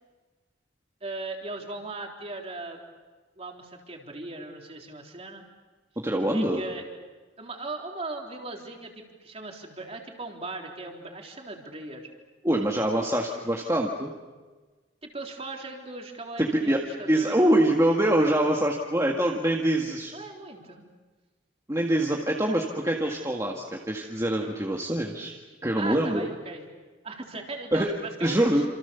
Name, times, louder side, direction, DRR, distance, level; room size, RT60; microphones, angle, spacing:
voice 1, 1.0-2.8 3.4-5.4 6.3-6.8 7.4-12.1 15.0-17.4 20.1-20.8 25.8-26.7 27.0-28.4, right 2 dB, 30° right, 1 dB, 3.7 m, -38 dB
voice 2, 6.0-6.6 12.4-14.1 16.4-20.1 21.7-25.4 25.6-26.3 27.7-27.9 28.2-28.6, right 1 dB, 15° right, 0 dB, 1.8 m, -24 dB
28.5 x 27.5 x 7.0 m, 1.3 s
head